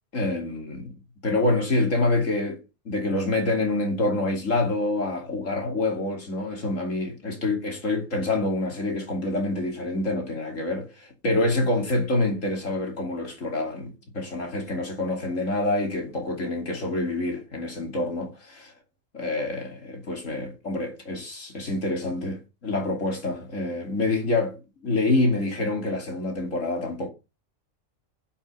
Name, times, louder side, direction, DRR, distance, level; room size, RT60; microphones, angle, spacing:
voice 1, 0.1-18.7 19.1-24.6 24.8-27.1, left 2 dB, 90° left, 3.2 m, -27 dB
11.0 x 5.9 x 5.6 m
omnidirectional pair, 1.3 m